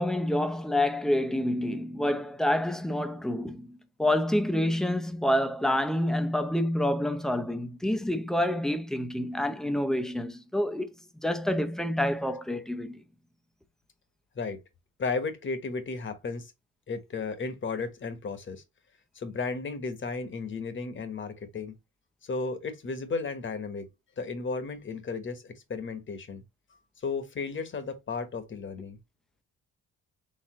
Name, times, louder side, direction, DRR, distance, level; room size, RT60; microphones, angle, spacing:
voice 1, 0.0-10.9 11.2-13.0, left 1 dB, ahead, 0.6 m, -28 dB
voice 2, 15.0-16.5 16.9-18.6 19.1-21.7 22.2-23.9 24.2-26.4 27.0-29.0, left 4 dB, 40° left, 1.2 m, -34 dB
4.2 x 3.6 x 3.0 m
cardioid pair, 90°, 30 cm